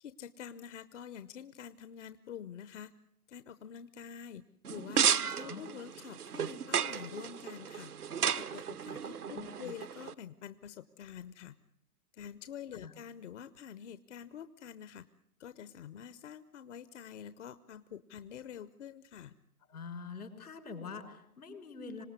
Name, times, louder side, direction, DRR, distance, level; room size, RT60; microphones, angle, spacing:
voice 1, 0.0-2.9 3.3-4.4 4.7-7.9 8.3-11.6 12.1-15.0 15.4-19.4, left 9 dB, 55° left, 13 dB, 1.0 m, -47 dB
sound 1, 4.6-10.1, right 8 dB, 85° right, 1.1 m, -34 dB
voice 2, 5.1-5.6 9.2-9.7 12.8-12.9 19.7-22.0, left 5 dB, 80° left, 5 dB, 5.8 m, -45 dB
26.5 x 19.0 x 9.7 m, 0.77 s
hypercardioid pair, 130°, 44 cm